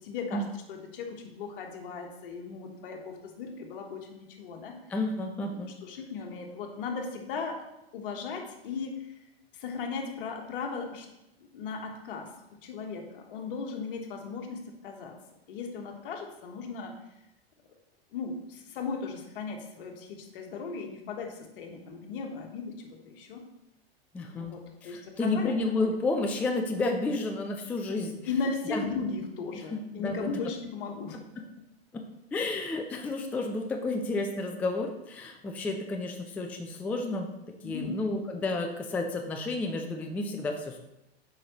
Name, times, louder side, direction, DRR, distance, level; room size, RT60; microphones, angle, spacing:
voice 1, 0.0-4.8 5.5-7.7 7.9-9.2 9.5-11.1 11.4-12.3 12.6-15.2 15.5-16.9 18.1-23.4 24.3-25.9 28.3-31.4 37.6-38.1, left 4 dB, 55° left, 3 dB, 1.3 m, -37 dB
voice 2, 4.9-5.7 24.1-24.5 24.8-28.2 28.7-28.8 29.7-30.3 31.9-32.0 32.3-37.3 37.6-40.8, left 2 dB, 5° left, 3 dB, 0.3 m, -31 dB
7.8 x 5.0 x 3.0 m, 0.90 s
figure-of-eight pair, 100°, 32 cm